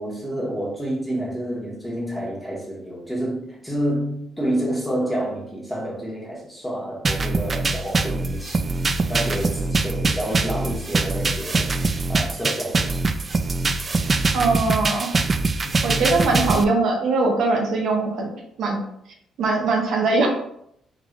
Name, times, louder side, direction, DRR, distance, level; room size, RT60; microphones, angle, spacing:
voice 1, 0.0-13.1 15.6-15.8, right 1 dB, ahead, -5 dB, 1.5 m, -29 dB
sound 1, 7.0-16.6, right 3 dB, 35° right, 0.3 m, -23 dB
voice 2, 14.3-15.1 15.8-18.3 18.6-18.8 19.4-20.3, right 3 dB, 75° right, 0 dB, 0.7 m, -21 dB
3.6 x 3.3 x 2.4 m, 0.72 s
cardioid pair, 90°, 0 cm